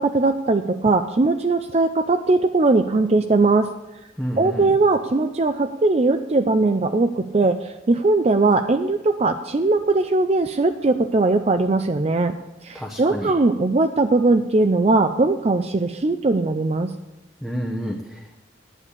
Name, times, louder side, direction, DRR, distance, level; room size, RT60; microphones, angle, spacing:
voice 1, 0.0-3.7 4.4-12.3 12.6-16.9, right 3 dB, 35° right, 8 dB, 0.5 m, -20 dB
voice 2, 4.2-4.8 12.7-13.3 17.4-18.4, equal, ahead, -1 dB, 0.9 m, -30 dB
10.0 x 8.8 x 8.2 m, 1.1 s
head